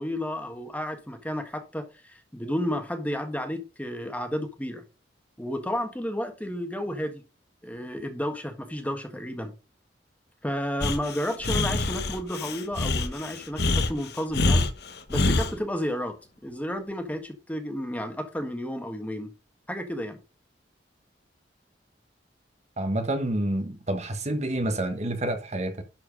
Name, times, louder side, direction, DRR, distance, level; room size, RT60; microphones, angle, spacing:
voice 1, 0.0-4.8 5.4-7.2 7.6-9.5 10.4-14.7 15.1-16.1 16.4-19.3 19.7-20.2, equal, 10° left, 1.5 m, -32 dB
Breathing, 10.8-15.5, left 2 dB, 65° left, 1.1 m, -25 dB
voice 2, 22.8-25.8, right 1 dB, 40° right, 1.2 m, -28 dB
11.5 x 4.6 x 5.2 m
head